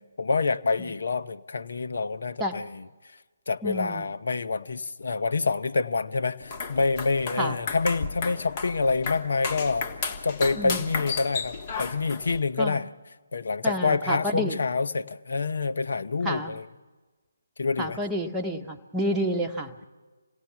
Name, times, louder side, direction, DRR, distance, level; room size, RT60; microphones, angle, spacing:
voice 1, 0.2-2.9 3.5-9.9 10.2-12.9 13.3-16.7 17.6-18.0, left 4 dB, 65° left, 0.8 m, -27 dB
voice 2, 3.6-4.0 7.4-7.5 10.6-10.9 12.6-12.8 13.6-14.6 16.2-16.6 17.8-19.9, equal, 5° right, 1.3 m, -29 dB
sound 1, 6.4-12.4, left 5 dB, 35° left, 1.7 m, -34 dB
27.0 x 17.5 x 5.9 m
figure-of-eight pair, 145°, 0 cm